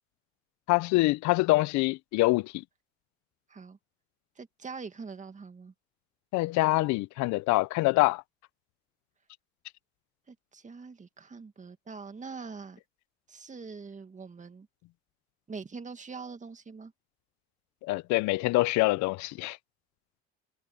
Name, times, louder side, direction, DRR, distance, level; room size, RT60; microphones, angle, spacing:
voice 1, 0.7-2.5 6.3-8.2 17.8-19.6, left 20 dB, 70° left, 0.5 m, -25 dB
voice 2, 4.4-5.7 10.3-12.8 13.3-14.7 15.5-16.9, right 4 dB, 25° right, 2.1 m, -43 dB
cardioid pair, 100°, 29 cm